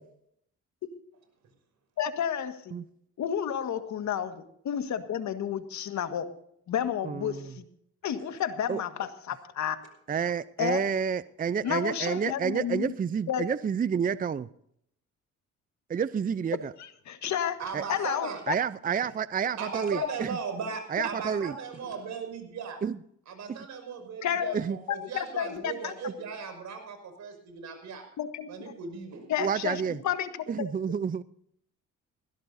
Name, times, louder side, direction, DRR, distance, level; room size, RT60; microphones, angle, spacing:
voice 1, 2.0-2.8 3.2-6.3 6.7-7.6 8.0-9.8 10.6-10.8 11.6-12.9 13.3-13.5 16.8-17.6 17.9-18.5 24.2-24.5 24.9-25.9 28.2-28.5 29.3-30.3 30.6-30.7, left 9 dB, 70° left, 9 dB, 1.7 m, -31 dB
voice 2, 7.0-7.5 8.7-8.8 10.1-14.5 15.9-16.7 17.7-17.8 18.5-20.4 20.9-21.5 22.8-23.0 23.5-23.7 24.5-24.8 29.4-30.0 30.5-31.2, right 7 dB, 30° right, 16 dB, 0.5 m, -29 dB
voice 3, 17.6-18.4 19.6-22.8 23.3-28.0 28.5-29.3, right 5 dB, 70° right, 5 dB, 6.0 m, -37 dB
20.5 x 16.5 x 2.7 m, 0.69 s
cardioid pair, 90°, 30 cm